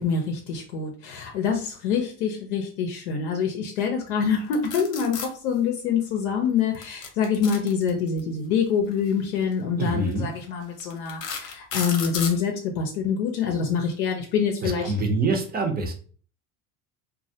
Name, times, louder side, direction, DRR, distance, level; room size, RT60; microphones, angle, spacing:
voice 1, 0.0-14.9, left 6 dB, 80° left, 2 dB, 0.6 m, -26 dB
sound 1, 4.5-5.3 6.7-8.2 9.3-9.5 10.1-10.2 10.8-12.4, left 6 dB, 45° left, 0.8 m, -33 dB
voice 2, 9.8-10.3 14.6-15.9, right 3 dB, 20° right, 2 dB, 0.6 m, -25 dB
2.2 x 2.0 x 2.7 m, 0.42 s
hypercardioid pair, 85°, 43 cm